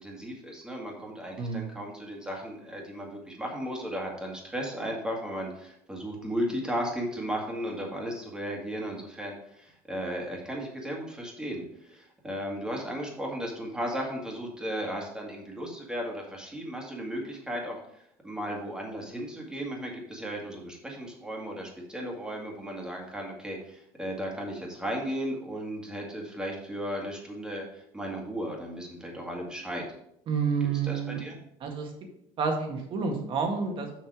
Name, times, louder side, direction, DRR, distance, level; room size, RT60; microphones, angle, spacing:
voice 1, 0.0-17.8 18.2-29.9 30.8-31.4, equal, 5° right, -1 dB, 2.1 m, -35 dB
voice 2, 1.4-1.8 30.3-31.2 31.6-31.9 32.4-34.1, right 5 dB, 45° right, 3 dB, 1.9 m, -29 dB
6.5 x 6.0 x 4.9 m, 0.74 s
cardioid pair, 135°, 12 cm